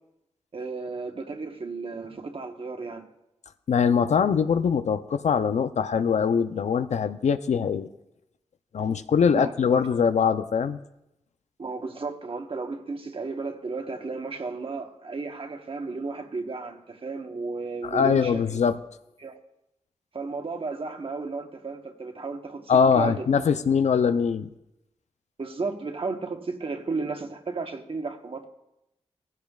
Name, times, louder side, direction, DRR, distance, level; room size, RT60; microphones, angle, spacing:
voice 1, 0.5-3.1 9.2-9.5 11.6-18.6 19.2-19.4 20.1-23.3 25.4-28.5, right 3 dB, 50° right, 1.3 m, -33 dB
voice 2, 3.7-7.9 8.7-10.8 17.9-18.7 22.7-24.5, left 6 dB, 75° left, 0.6 m, -22 dB
16.5 x 15.0 x 2.4 m
wide cardioid pair, 75°, 12 cm